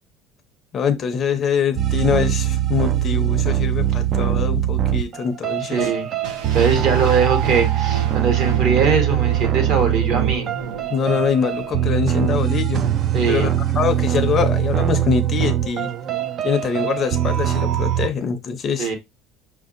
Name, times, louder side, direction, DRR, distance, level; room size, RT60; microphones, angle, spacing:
voice 1, 0.7-5.8 10.9-12.9 13.2-15.9 16.4-18.9, left 7 dB, 30° left, 0.5 m, -23 dB
sound 1, 1.8-18.1, right 11 dB, 35° right, 0.3 m, -21 dB
voice 2, 5.6-6.1 6.5-10.4 13.1-13.6 18.8-18.9, right 5 dB, 55° right, 1.3 m, -21 dB
sound 2, 6.2-12.2, right 4 dB, 75° right, 0.7 m, -34 dB
5.6 x 2.6 x 2.5 m
cardioid pair, 155°, 0 cm